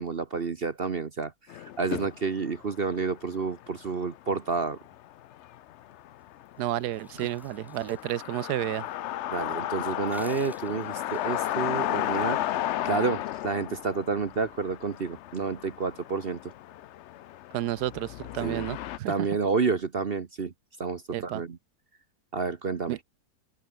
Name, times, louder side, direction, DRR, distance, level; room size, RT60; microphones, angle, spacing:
voice 1, 0.0-4.8 9.3-12.4 12.8-16.5 18.4-18.7 19.1-20.5 20.8-21.6 22.3-23.0, right 4 dB, 40° right, 1.1 m, -30 dB
sound 1, 1.5-19.0, left 13 dB, 85° left, 0.6 m, -34 dB
sound 2, 6.4-8.9 9.2-9.3 9.7-12.2, equal, ahead, 7.7 m, -54 dB
voice 2, 6.6-8.9 17.5-19.3 21.1-21.4 22.9-23.0, right 14 dB, 75° right, 1.2 m, -31 dB
open air
omnidirectional pair, 1.8 m